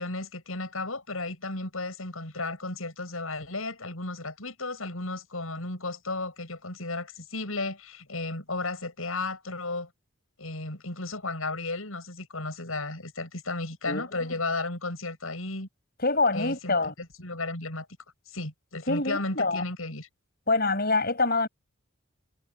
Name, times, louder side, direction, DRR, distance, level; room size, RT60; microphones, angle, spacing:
voice 1, 0.0-9.9 10.4-15.7 16.3-17.9 18.3-20.1, left 2 dB, 80° left, 7.4 m, -34 dB
voice 2, 16.0-16.9 18.9-19.6 20.5-21.5, left 3 dB, 45° left, 7.1 m, -25 dB
head